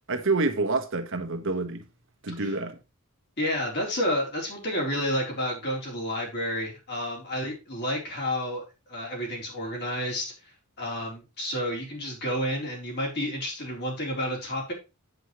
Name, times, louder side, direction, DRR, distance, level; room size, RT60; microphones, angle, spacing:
voice 1, 0.1-1.8 2.2-2.8, right 3 dB, 60° right, 1.3 m, -27 dB
voice 2, 3.4-8.6 8.9-10.3 10.8-14.7, equal, 50° left, 3.8 m, -30 dB
8.0 x 7.8 x 3.1 m
head